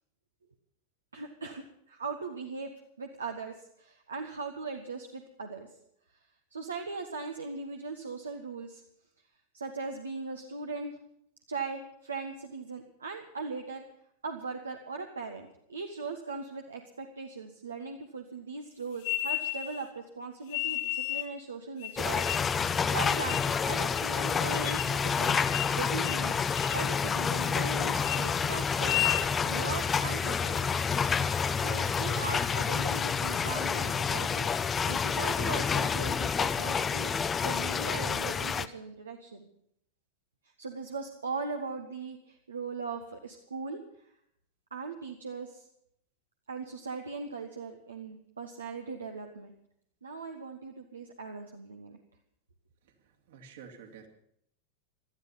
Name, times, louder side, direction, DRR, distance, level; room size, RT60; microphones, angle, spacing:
voice 1, 1.1-2.7 3.0-5.7 6.5-8.8 9.5-11.0 11.5-13.8 14.2-22.4 22.9-25.4 25.7-30.9 31.6-34.5 34.8-37.1 37.4-39.5 40.6-43.8 44.7-45.7 46.5-49.5 50.0-52.0, right 4 dB, 75° right, 3 dB, 1.4 m, -39 dB
sound 1, 19.0-19.8 20.5-21.3 21.8-22.6 23.0-23.5 24.0-24.1 24.5-25.0 25.3-25.8 26.0-26.3 26.6-26.9 27.3-27.7 28.0-28.2 28.7-29.3, left 15 dB, 50° left, 1.6 m, -33 dB
sound 2, 22.0-38.7, left 6 dB, 20° left, 0.7 m, -29 dB
voice 2, 52.8-54.1, right 6 dB, 60° right, 3 dB, 2.8 m, -51 dB
18.0 x 12.5 x 5.7 m, 0.73 s
figure-of-eight pair, 90°, 0 cm